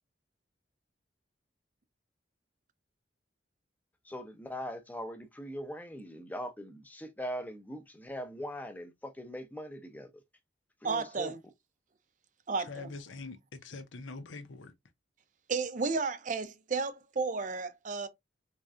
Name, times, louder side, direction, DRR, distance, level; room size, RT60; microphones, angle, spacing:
voice 1, 4.1-10.1 10.8-11.3, equal, 10° left, 0.6 m, -41 dB
voice 2, 10.8-11.4 12.5-13.0 15.5-18.1, right 4 dB, 40° right, 0.5 m, -33 dB
voice 3, 12.7-14.7, left 3 dB, 85° left, 0.7 m, -44 dB
3.7 x 3.2 x 2.4 m
head